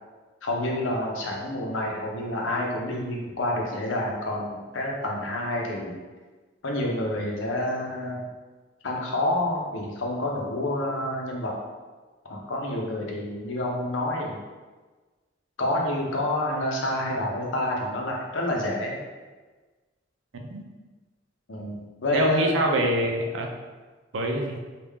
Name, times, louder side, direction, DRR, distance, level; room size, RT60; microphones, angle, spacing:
voice 1, 0.4-6.0 6.6-8.3 8.8-11.5 12.3-14.4 15.6-19.0 21.5-22.5, left 1 dB, 80° left, -1 dB, 0.7 m, -28 dB
voice 2, 22.1-23.5 24.1-24.6, right 1 dB, 75° right, 2 dB, 0.5 m, -25 dB
3.6 x 2.4 x 3.4 m, 1.3 s
head